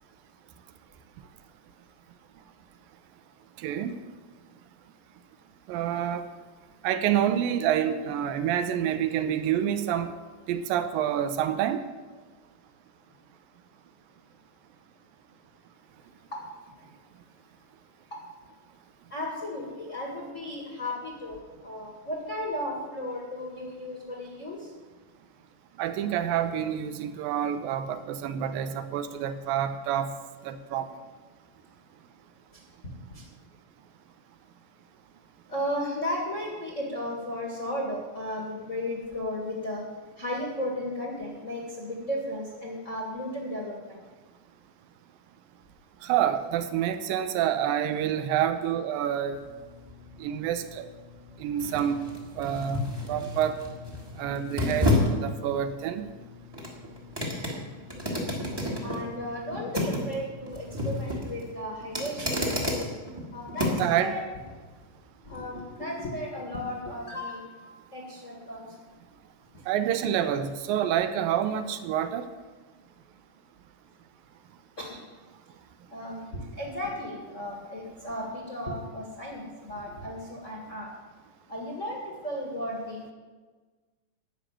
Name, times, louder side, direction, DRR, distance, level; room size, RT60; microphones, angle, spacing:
voice 1, 3.6-4.0 5.7-6.3 6.8-10.2 10.5-11.9 25.8-30.2 30.4-30.9 46.0-49.4 50.2-50.9 51.4-52.0 52.4-53.6 54.2-55.0 55.2-56.1 63.8-64.2 69.7-72.3, right 10 dB, 85° right, 10 dB, 2.5 m, -27 dB
voice 2, 19.1-24.7 33.1-33.2 35.5-39.8 40.2-44.0 58.8-62.7 63.3-64.2 65.2-67.6 67.9-68.7 74.8-75.0 75.9-80.9 81.5-83.1, left 1 dB, 35° left, -2 dB, 1.4 m, -35 dB
sound 1, 49.3-64.0 64.5-64.6, left 1 dB, 10° right, 1.1 m, -31 dB
12.0 x 6.1 x 8.9 m, 1.4 s
omnidirectional pair, 4.0 m